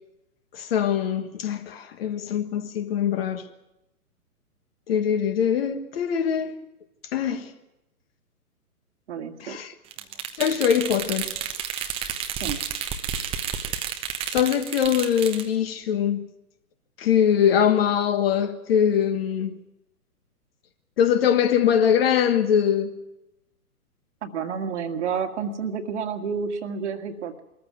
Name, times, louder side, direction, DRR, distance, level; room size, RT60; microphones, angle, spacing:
voice 1, 0.5-3.4 4.9-6.5 7.1-7.5 9.4-9.7 10.4-11.3 14.3-16.2 17.0-19.5 21.0-22.9, left 8 dB, 40° left, 1.5 m, -22 dB
voice 2, 9.1-9.6 12.3-12.6 24.2-27.4, right 6 dB, 45° right, 1.9 m, -30 dB
sound 1, 9.9-15.5, right 8 dB, 10° right, 1.0 m, -31 dB
22.0 x 14.5 x 9.4 m
figure-of-eight pair, 125°, 47 cm